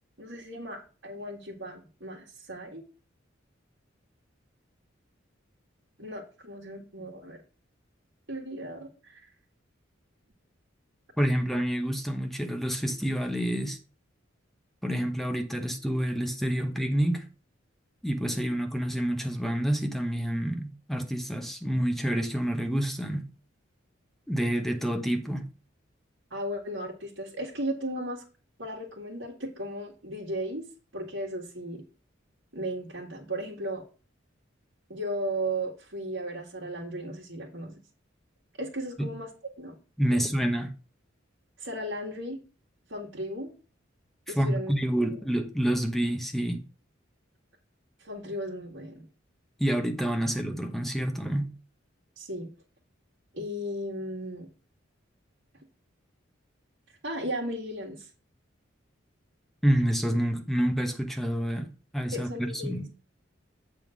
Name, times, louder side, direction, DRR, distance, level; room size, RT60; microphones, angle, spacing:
voice 1, 0.2-2.8 6.0-7.4 8.3-9.2 26.3-28.2 28.6-30.7 30.9-31.8 32.5-33.8 34.9-37.8 38.6-39.3 39.6-39.8 40.1-40.2 41.6-42.4 42.9-43.5 44.3-44.8 45.1-45.2 48.0-49.1 52.2-52.5 53.3-54.5 57.0-58.1 62.1-62.8, right 1 dB, 70° right, 1.8 m, -35 dB
voice 2, 11.2-13.8 14.8-17.2 18.0-23.2 24.3-25.5 39.0-39.1 40.0-40.7 44.4-46.6 49.6-51.5 59.6-63.0, right 1 dB, ahead, 1.0 m, -28 dB
7.7 x 3.7 x 6.3 m
head